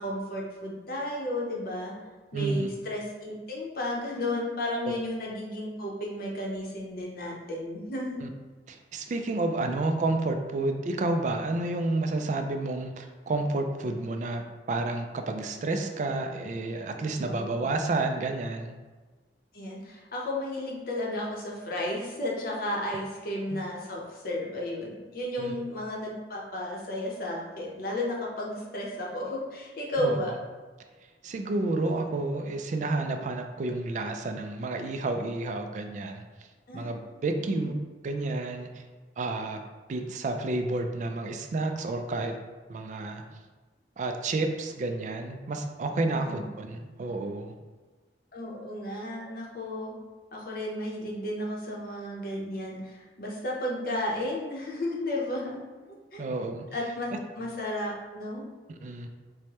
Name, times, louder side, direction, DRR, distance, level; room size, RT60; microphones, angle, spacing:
voice 1, 0.0-1.9 2.3-8.2 17.2-17.5 19.5-30.3 36.7-36.9 37.4-37.7 46.1-46.5 48.3-50.0 50.3-55.6 56.1-56.2 56.7-58.5, left 1 dB, 55° left, -2 dB, 0.7 m, -33 dB
voice 2, 2.3-2.7 8.2-8.3 8.7-18.7 23.5-23.7 25.4-25.5 30.0-30.2 31.2-36.2 36.7-37.7 38.0-38.7 39.2-39.6 39.9-42.3 42.7-43.2 44.0-47.5 56.2-56.6 58.8-59.1, right 2 dB, 45° right, 5 dB, 0.3 m, -30 dB
4.6 x 2.1 x 2.9 m, 1.3 s
head